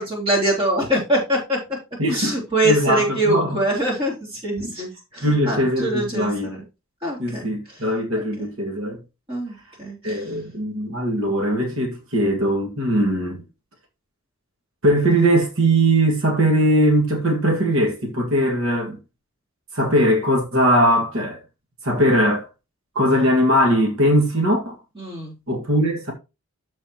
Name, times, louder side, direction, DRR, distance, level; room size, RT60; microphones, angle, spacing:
voice 1, 0.0-1.6 2.1-6.6 7.0-7.5 8.1-8.2 9.3-10.2 25.0-25.3, right 1 dB, 25° right, 3.4 m, -24 dB
voice 2, 2.0-2.4 2.6-3.6 4.6-4.7 5.2-6.5 7.2-9.0 10.0-13.4 14.8-19.0 19.7-21.4 21.8-22.5 23.0-24.8 25.5-26.1, equal, 75° right, 2.0 m, -20 dB
13.0 x 4.5 x 3.0 m
head